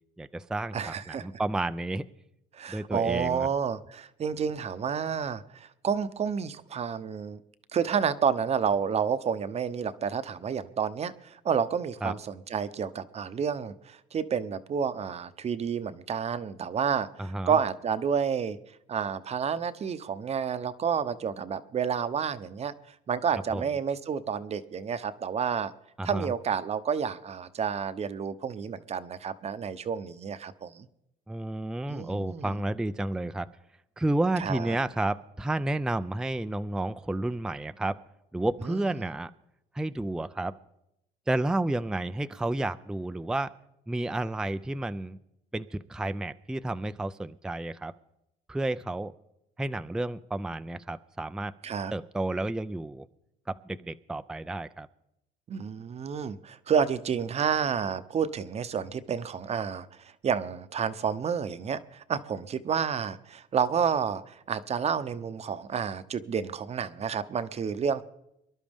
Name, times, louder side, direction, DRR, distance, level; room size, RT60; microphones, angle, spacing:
voice 1, 0.2-2.1 2.7-3.5 12.0-12.1 17.2-17.6 23.5-23.6 26.0-26.3 31.3-33.5 34.0-38.0 38.3-39.3 39.7-40.5 41.3-43.5 43.9-45.2 45.5-47.9 48.5-49.1 49.6-51.5 51.9-53.1 53.5-54.9, right 2 dB, 5° right, 11 dB, 0.4 m, -31 dB
voice 2, 0.7-1.3 2.5-7.4 7.7-18.6 18.9-22.7 23.1-25.7 26.0-30.9 31.9-32.6 34.4-34.8 38.6-38.9 51.6-51.9 55.5-68.0, right 7 dB, 40° right, 13 dB, 0.8 m, -30 dB
24.5 x 11.5 x 3.6 m, 0.82 s
cardioid pair, 110°, 17 cm